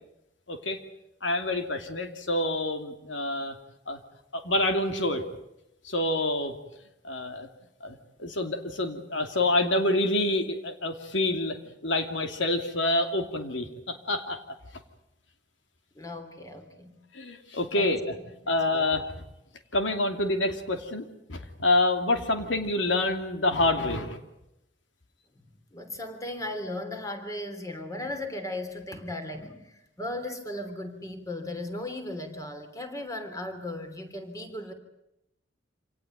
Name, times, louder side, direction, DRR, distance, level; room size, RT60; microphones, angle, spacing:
voice 1, 0.5-0.8 1.2-3.6 3.9-4.0 4.3-5.2 5.8-6.6 7.0-7.5 7.8-11.6 11.8-14.4 17.1-18.1 18.5-19.2 19.7-24.2, left 2 dB, 90° left, 6 dB, 2.8 m, -27 dB
voice 2, 15.9-17.0 17.8-17.9 18.4-18.9 25.3-34.7, left 1 dB, 20° left, 7 dB, 3.1 m, -37 dB
27.0 x 18.5 x 9.3 m, 0.86 s
head